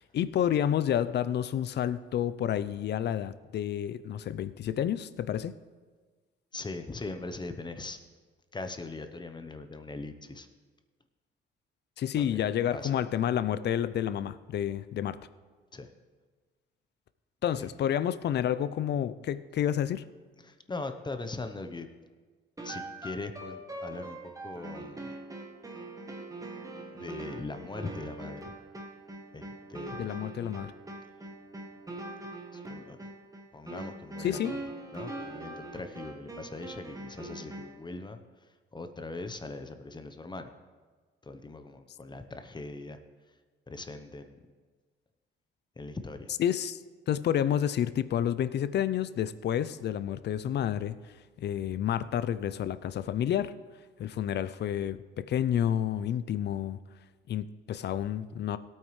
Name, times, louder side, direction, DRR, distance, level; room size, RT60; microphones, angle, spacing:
voice 1, 0.0-5.5 12.0-15.2 17.4-20.0 30.0-30.7 34.2-34.5 46.4-46.8 47.1-51.0 51.4-53.5 54.0-56.8 57.3-58.6, left 10 dB, 60° left, 15 dB, 0.5 m, -29 dB
voice 2, 6.5-8.0 8.5-10.5 12.2-13.0 15.7-15.9 17.5-17.7 20.4-21.9 22.6-25.2 26.9-28.5 29.3-30.2 32.5-33.1 33.5-34.6 34.9-40.5 41.2-43.0 43.7-44.4 45.8-46.3, left 3 dB, 20° left, 8 dB, 0.8 m, -41 dB
sound 1, 22.6-37.9, right 2 dB, 15° right, 1.4 m, -42 dB
17.5 x 8.9 x 3.2 m, 1.4 s
cardioid pair, 90°, 20 cm